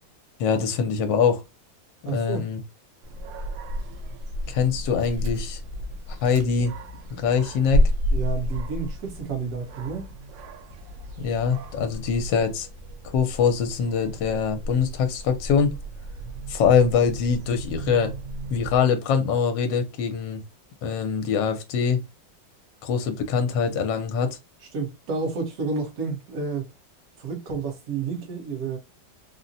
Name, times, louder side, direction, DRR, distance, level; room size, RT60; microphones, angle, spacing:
voice 1, 0.4-1.4 2.0-2.6 4.5-5.6 6.1-6.8 7.1-7.8 11.2-12.7 13.1-15.7 16.5-18.1 18.5-20.4 20.8-22.0 22.8-24.4, left 6 dB, 80° left, 1.3 m, -23 dB
voice 2, 2.0-2.5 8.1-10.1 24.7-26.7 27.2-28.8, right 4 dB, 55° right, 1.3 m, -30 dB
Dog, 3.0-18.8, equal, 85° right, 1.4 m, -31 dB
3.9 x 2.1 x 2.6 m
omnidirectional pair, 2.0 m